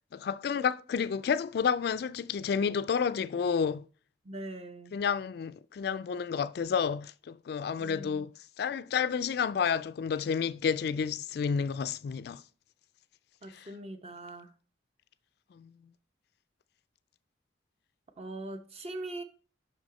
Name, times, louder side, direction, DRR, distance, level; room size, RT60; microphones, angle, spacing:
voice 1, 0.1-3.8 4.9-8.3 8.6-12.4 13.5-13.7 15.6-15.7, left 6 dB, 60° left, 0.3 m, -30 dB
voice 2, 4.2-4.9 7.8-8.3 13.4-14.5 18.2-19.2, right 2 dB, 35° right, 0.8 m, -41 dB
6.2 x 5.8 x 4.1 m
head